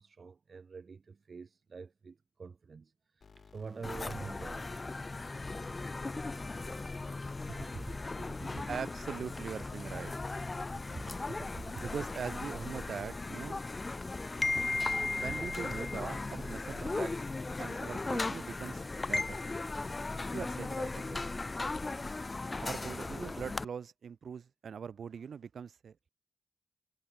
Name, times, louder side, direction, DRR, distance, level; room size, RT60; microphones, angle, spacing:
voice 1, 0.0-4.8 7.5-8.7 10.9-11.9, right 5 dB, 45° right, 4.4 m, -47 dB
sound 1, 3.2-18.0, left 5 dB, 50° left, 4.6 m, -58 dB
sound 2, 3.8-23.6, left 3 dB, 25° left, 0.4 m, -37 dB
voice 2, 8.7-10.1 11.8-13.7 15.2-17.2 17.6-19.4 20.3-21.4 22.6-26.1, right 7 dB, 70° right, 5.0 m, -42 dB
wide cardioid pair, 150°, 0 cm